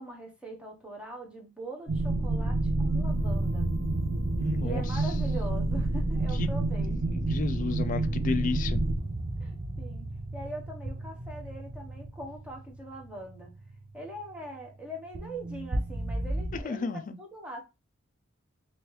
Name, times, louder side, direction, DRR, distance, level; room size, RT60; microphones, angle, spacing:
voice 1, 0.0-3.7 4.6-7.0 8.0-8.1 9.4-10.1 10.3-13.5 13.9-17.6, right 1 dB, 5° right, 0.9 m, -42 dB
sound 1, 1.9-8.9, right 2 dB, 50° right, 0.8 m, -28 dB
sound 2, 3.0-5.9, equal, 75° right, 1.5 m, -37 dB
voice 2, 4.4-4.8 6.4-6.5 7.1-8.8 16.6-17.2, left 4 dB, 40° left, 0.4 m, -32 dB
sound 3, 8.2-16.6, right 1 dB, 30° right, 0.3 m, -37 dB
3.1 x 3.0 x 3.1 m
head